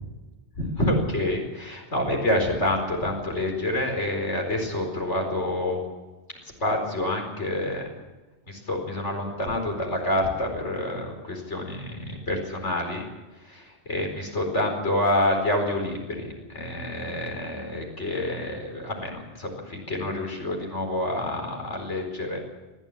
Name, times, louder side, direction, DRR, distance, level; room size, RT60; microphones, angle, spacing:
voice 1, 0.6-5.8 6.6-7.9 8.5-13.0 13.4-22.4, left 1 dB, 75° left, 2 dB, 4.9 m, -27 dB
21.0 x 14.5 x 8.7 m, 1.2 s
omnidirectional pair, 1.2 m